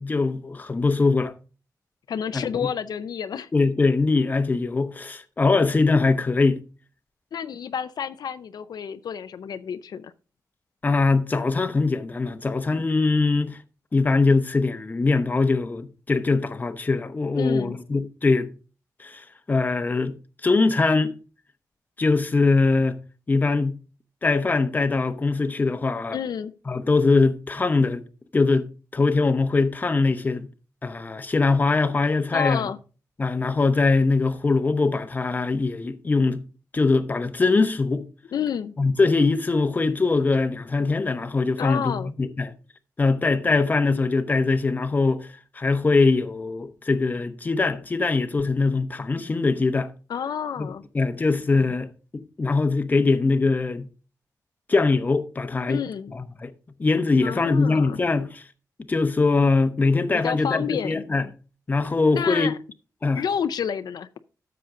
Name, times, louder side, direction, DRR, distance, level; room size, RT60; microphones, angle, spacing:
voice 1, 0.0-1.3 2.3-2.7 3.5-6.6 10.8-13.6 13.9-18.5 19.0-20.1 20.4-21.1 22.0-23.0 23.3-23.8 24.2-26.2 26.7-28.0 28.3-28.7 28.9-30.5 30.8-32.7 33.2-36.4 36.7-38.1 38.8-42.5 43.0-49.9 50.6-51.9 52.4-53.9 54.7-55.8 56.1-56.5 56.8-58.4 58.9-61.3 61.7-62.5 63.0-63.2, left 3 dB, 25° left, 0.8 m, -22 dB
voice 2, 2.1-3.5 7.3-10.1 17.3-17.7 26.1-26.5 32.3-32.8 38.3-38.7 41.6-42.1 50.1-50.8 55.7-56.1 57.2-58.0 60.1-61.0 62.1-62.6 63.1-64.1, left 8 dB, 80° left, 0.5 m, -29 dB
13.0 x 6.9 x 3.8 m
wide cardioid pair, 165°, 7 cm